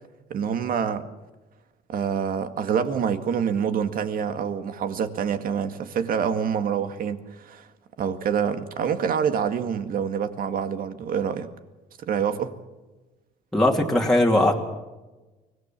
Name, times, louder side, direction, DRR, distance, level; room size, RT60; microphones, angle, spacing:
voice 1, 0.3-1.1 1.9-7.7 8.0-11.5 12.0-12.5, right 7 dB, 55° right, 9 dB, 2.0 m, -26 dB
voice 2, 13.5-14.6, left 1 dB, ahead, -2 dB, 2.6 m, -19 dB
24.5 x 18.5 x 7.4 m, 1.2 s
cardioid pair, 110°, 17 cm